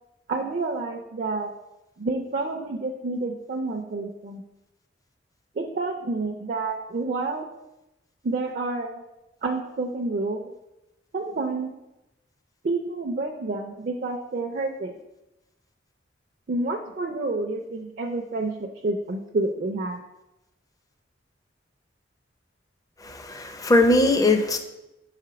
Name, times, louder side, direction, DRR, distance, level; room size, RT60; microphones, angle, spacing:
voice 1, 0.3-1.5 2.0-4.4 5.6-7.5 8.2-9.0 9.4-10.5 11.1-11.7 12.6-15.0 16.5-20.0, right 3 dB, 45° right, 1 dB, 0.4 m, -29 dB
voice 2, 23.0-24.6, left 2 dB, 20° left, 6 dB, 0.5 m, -20 dB
4.9 x 3.5 x 5.6 m, 0.95 s
head